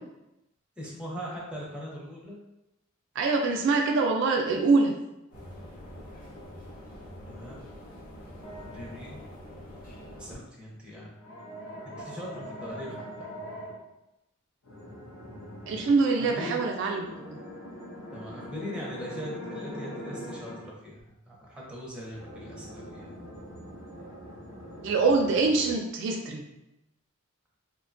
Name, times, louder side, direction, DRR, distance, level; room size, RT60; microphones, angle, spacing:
voice 1, 0.8-2.4 7.3-7.6 8.6-9.2 10.2-11.2 11.8-13.3 16.2-16.6 18.1-23.1, equal, 5° right, -5 dB, 0.5 m, -40 dB
voice 2, 3.2-4.9 15.7-17.4 24.8-26.4, right 3 dB, 60° right, 2 dB, 0.3 m, -24 dB
sound 1, 5.3-10.4, equal, 40° left, 0.9 m, -45 dB
sound 2, 8.4-9.3 11.1-13.8 14.6-16.0 16.6-20.7 22.1-25.7, equal, 65° left, 0.6 m, -42 dB
2.6 x 2.1 x 2.5 m, 0.93 s
head